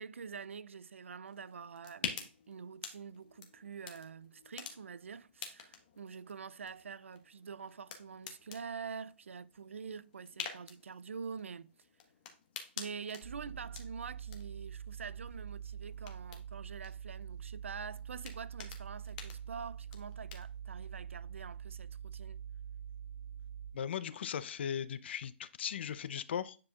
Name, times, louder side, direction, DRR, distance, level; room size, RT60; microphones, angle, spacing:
voice 1, 0.0-11.8 12.8-22.4, right 6 dB, 85° right, 0.4 m, -46 dB
sound 1, 1.3-20.6, left 7 dB, 40° left, 1.4 m, -49 dB
sound 2, 13.2-23.7, right 8 dB, 50° right, 2.1 m, -45 dB
voice 2, 23.7-26.6, left 8 dB, 60° left, 0.6 m, -38 dB
9.5 x 4.8 x 2.4 m
hypercardioid pair, 145°, 7 cm